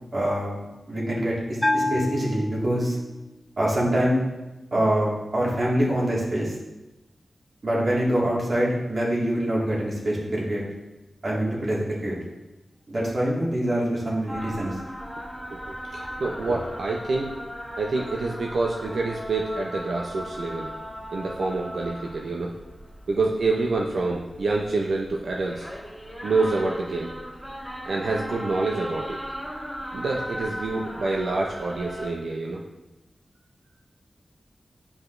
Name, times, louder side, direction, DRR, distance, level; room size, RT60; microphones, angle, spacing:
voice 1, 0.1-0.6 0.9-3.0 3.6-4.2 4.7-6.5 7.6-10.6 11.2-12.1 12.9-14.8, right 1 dB, 45° right, -5 dB, 1.8 m, -25 dB
Bell, 1.6-3.2, left 1 dB, 15° left, 0.4 m, -27 dB
sound 1, 14.3-32.1, equal, 5° right, 0.9 m, -38 dB
voice 2, 15.5-17.3 17.8-20.7 21.1-22.5 23.1-25.7 26.2-27.1 27.9-29.2 29.9-32.6, right 3 dB, 80° right, -1 dB, 0.5 m, -27 dB
9.5 x 4.9 x 2.5 m, 1.0 s
wide cardioid pair, 120°, 0 cm